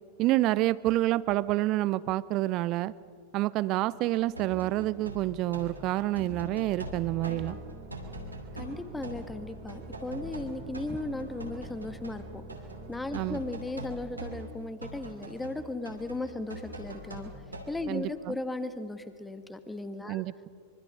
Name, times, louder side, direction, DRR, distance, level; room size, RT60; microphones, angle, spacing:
voice 1, 0.2-2.9 3.3-7.6 13.1-13.4 17.9-18.3 20.1-20.3, right 16 dB, 40° right, 20 dB, 0.6 m, -28 dB
sound 1, 3.9-12.2 12.5-18.1, right 1 dB, 80° right, 2.7 m, -42 dB
sound 2, 6.8-13.4, right 3 dB, 55° right, 3.1 m, -46 dB
voice 2, 8.6-12.4 12.9-17.3 17.7-20.2, left 2 dB, 10° left, 10 dB, 1.5 m, -36 dB
25.0 x 24.0 x 5.5 m, 2.2 s
figure-of-eight pair, 90°, 0 cm